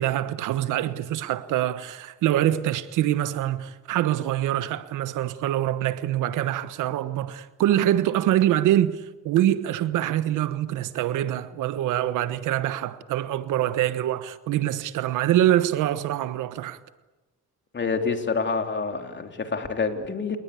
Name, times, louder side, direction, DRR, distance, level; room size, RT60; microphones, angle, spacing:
voice 1, 0.0-16.8, right 12 dB, 90° right, 1.2 m, -24 dB
voice 2, 17.7-20.4, left 4 dB, 40° left, 3.3 m, -27 dB
28.5 x 20.0 x 8.4 m
cardioid pair, 90°, 30 cm